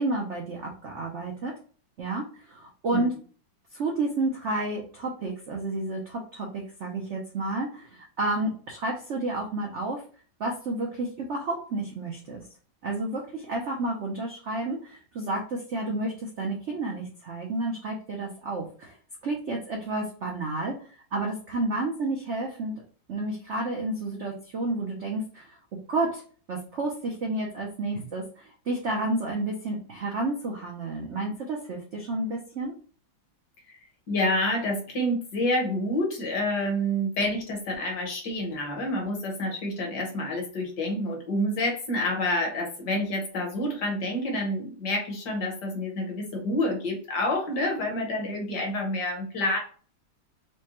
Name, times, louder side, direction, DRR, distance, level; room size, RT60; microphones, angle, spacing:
voice 1, 0.0-1.5 2.0-3.1 3.7-10.0 10.4-12.4 12.8-19.0 19.2-22.8 23.1-25.6 25.9-26.2 26.5-32.7, right 2 dB, 65° right, 0 dB, 0.7 m, -31 dB
voice 2, 34.1-49.6, left 1 dB, 60° left, 1 dB, 1.5 m, -28 dB
4.9 x 2.2 x 2.9 m, 0.41 s
omnidirectional pair, 2.1 m